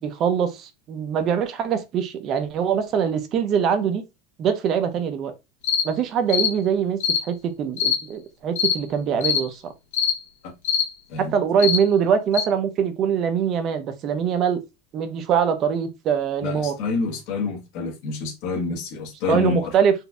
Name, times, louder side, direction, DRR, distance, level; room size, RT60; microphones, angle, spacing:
voice 1, 0.0-4.0 4.4-5.3 5.8-9.7 11.2-14.6 14.9-16.7 19.3-19.9, right 7 dB, 35° right, 0.6 m, -23 dB
sound 1, 5.6-5.8 6.3-6.5 7.0-7.2 7.8-8.0 8.5-8.8 9.2-9.4 9.9-10.1 10.6-10.8 11.6-11.8 12.3-12.4, left 8 dB, 80° left, 1.4 m, -21 dB
voice 2, 16.4-19.7, left 4 dB, 50° left, 1.1 m, -27 dB
4.0 x 2.6 x 2.3 m
supercardioid pair, 155°, 0 cm